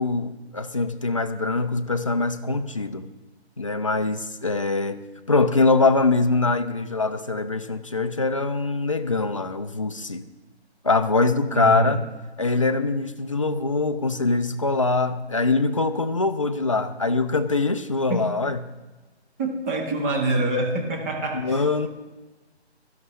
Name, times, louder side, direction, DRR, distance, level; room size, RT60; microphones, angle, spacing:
voice 1, 0.0-3.1 3.6-5.0 5.3-10.3 10.8-12.0 12.4-18.6 21.3-21.9, left 3 dB, 30° left, 9 dB, 0.4 m, -23 dB
voice 2, 11.5-12.0 19.4-21.9, right 2 dB, 15° right, 0 dB, 1.0 m, -26 dB
16.5 x 12.5 x 3.1 m, 1.2 s
figure-of-eight pair, 155°, 33 cm